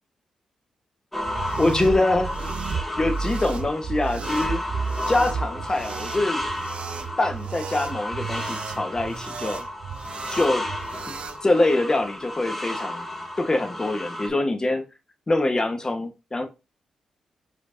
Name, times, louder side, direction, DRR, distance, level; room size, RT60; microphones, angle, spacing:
sound 1, 1.1-14.3, left 1 dB, 5° left, 1.5 m, -33 dB
sound 2, 1.2-11.4, right 6 dB, 60° right, 0.4 m, -33 dB
voice 1, 1.6-2.3 3.0-4.6 5.1-6.4 7.2-9.6 10.3-10.6 11.1-11.2 11.4-13.1 13.4-14.8 15.3-16.5, left 2 dB, 30° left, 1.1 m, -24 dB
4.6 x 4.4 x 2.6 m
supercardioid pair, 45°, 2 cm